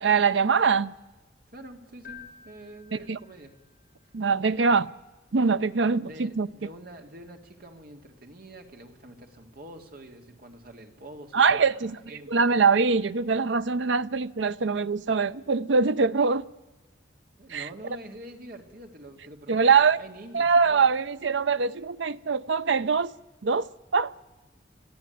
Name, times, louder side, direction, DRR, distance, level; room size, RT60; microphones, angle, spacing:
voice 1, 0.0-0.9 2.9-3.2 4.1-4.9 5.3-6.5 11.3-12.0 12.3-16.4 17.5-17.7 19.5-20.0 20.3-23.1 23.4-24.2, right 5 dB, 75° right, 0.6 m, -23 dB
voice 2, 1.5-3.5 4.0-4.1 6.0-12.4 17.4-20.9, right 1 dB, 50° right, 2.2 m, -46 dB
Keyboard (musical), 2.0-3.9, left 8 dB, 50° left, 4.1 m, -49 dB
23.0 x 14.5 x 9.2 m
head